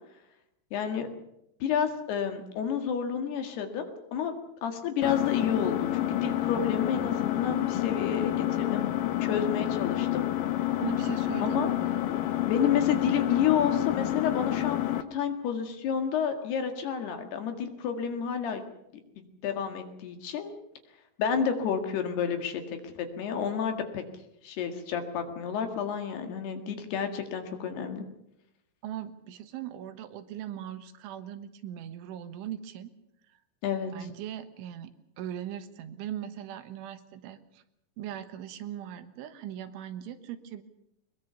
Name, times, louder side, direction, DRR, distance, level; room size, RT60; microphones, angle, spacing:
voice 1, 0.7-1.1 1.6-4.3 4.6-8.9 9.2-10.2 11.4-11.7 12.5-18.6 19.2-20.6 21.2-24.0 24.4-28.1 33.6-33.9, left 7 dB, 65° left, 6 dB, 3.7 m, -30 dB
Engine, 5.0-15.0, left 14 dB, 90° left, 1.9 m, -29 dB
voice 2, 10.8-12.1 28.8-32.9 33.9-37.6 38.0-40.6, right 11 dB, 85° right, 9 dB, 3.8 m, -39 dB
22.0 x 21.5 x 6.9 m, 0.82 s
omnidirectional pair, 5.4 m